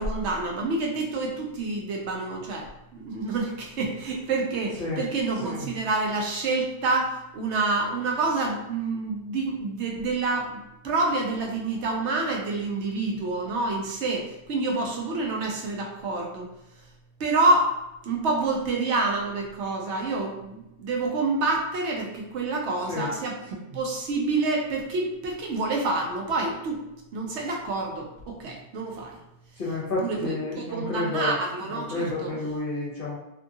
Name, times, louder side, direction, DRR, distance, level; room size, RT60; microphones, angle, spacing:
voice 1, 0.0-16.5 17.2-17.8 18.0-26.8 27.1-29.2 30.0-32.4, right 3 dB, 70° right, 0 dB, 0.9 m, -28 dB
voice 2, 29.6-31.4 31.7-33.2, left 2 dB, 55° left, -7 dB, 0.8 m, -30 dB
2.7 x 2.4 x 2.6 m, 0.88 s
omnidirectional pair, 1.2 m